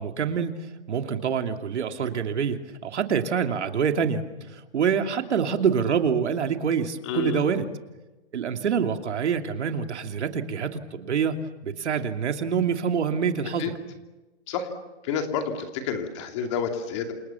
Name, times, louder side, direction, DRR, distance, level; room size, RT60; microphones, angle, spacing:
voice 1, 0.0-7.7 8.3-13.7, right 7 dB, 80° right, 6 dB, 2.9 m, -26 dB
voice 2, 7.0-7.5 13.6-13.7 14.5-14.7 15.0-17.1, left 6 dB, 25° left, 5 dB, 2.7 m, -29 dB
28.5 x 28.5 x 7.1 m, 1.1 s
hypercardioid pair, 175°, 34 cm